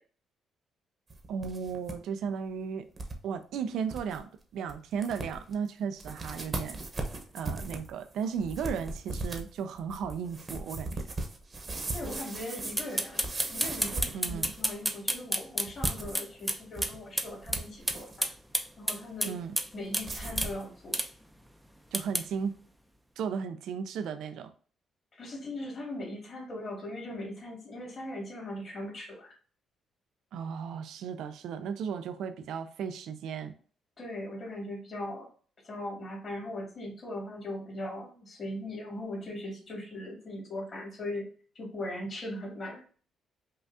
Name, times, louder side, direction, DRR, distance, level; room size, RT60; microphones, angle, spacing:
sound 1, 1.1-2.0 2.3-2.4 3.0-3.2 3.6-3.7 3.9-4.2 4.7-4.8 5.0-5.5 6.0-14.8 15.7-17.0 17.3-18.2 20.0-20.6, right 2 dB, 30° right, 0.9 m, -38 dB
voice 1, 1.3-2.9 3.2-6.8 7.3-11.0 14.1-14.5 19.2-19.5 21.9-22.6 23.2-24.5 30.3-33.5, right 6 dB, 80° right, 9 dB, 0.5 m, -35 dB
voice 2, 11.9-18.3 18.8-19.3 19.7-21.0 25.2-29.3 34.0-35.3 35.6-41.3 41.6-42.8, left 1 dB, 45° left, -1 dB, 2.0 m, -39 dB
Bycycle rattle, 12.8-16.9 17.2-17.3 17.5-17.6 17.9-19.7 19.9-20.1 20.4-20.5 20.9-21.1 21.9-22.2, right 1 dB, 5° right, 0.5 m, -29 dB
5.5 x 2.4 x 2.7 m, 0.42 s
cardioid pair, 90°, 0 cm